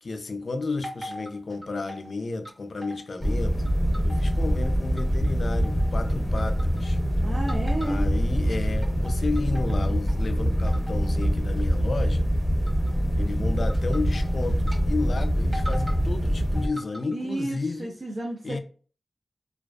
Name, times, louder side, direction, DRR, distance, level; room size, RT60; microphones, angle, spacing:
voice 1, 0.0-3.6 4.0-7.0 7.8-12.3 13.2-17.9 18.4-18.6, left 3 dB, 65° left, 0.3 m, -32 dB
sound 1, 0.8-2.1 2.4-3.3 3.6-5.3 5.6-6.0 6.4-7.0 7.5-8.2 8.6-10.2 10.7-11.2 11.6-11.9 12.7-13.0 13.6-14.8 15.1-15.2 15.5-16.0 16.5-17.2, equal, 25° right, 1.0 m, -41 dB
sound 2, 3.2-16.7, equal, ahead, 0.6 m, -24 dB
voice 2, 7.2-8.0 17.1-18.6, right 1 dB, 65° right, 0.5 m, -32 dB
2.4 x 2.3 x 2.2 m
wide cardioid pair, 90°, 0 cm